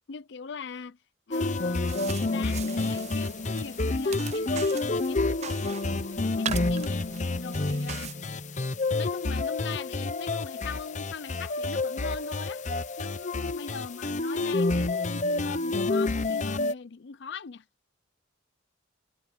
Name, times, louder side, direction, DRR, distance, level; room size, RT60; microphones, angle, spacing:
voice 1, 0.1-1.0 1.3-5.8 6.3-7.1 7.4-8.1 8.9-12.6 13.0-17.6, left 5 dB, 60° left, 0.6 m, -40 dB
sound 1, 1.3-16.7, left 2 dB, 40° left, 0.9 m, -29 dB
sound 2, 1.6-8.1, right 8 dB, 35° right, 0.5 m, -41 dB
head